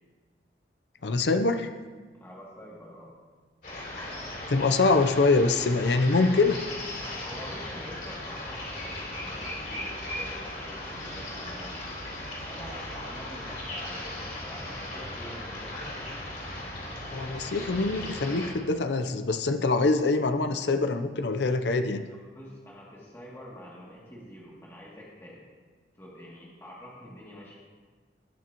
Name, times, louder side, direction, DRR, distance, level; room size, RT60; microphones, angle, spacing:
voice 1, 1.0-1.7 4.5-6.6 17.1-22.0, left 3 dB, 85° left, 8 dB, 0.6 m, -24 dB
voice 2, 2.2-3.1 7.2-11.9 12.5-15.9 22.1-25.4 26.0-27.6, equal, 15° left, -6 dB, 2.4 m, -46 dB
sound 1, 3.6-18.5, left 1 dB, 50° left, 3.5 m, -37 dB
19.5 x 8.7 x 3.0 m, 1.5 s
head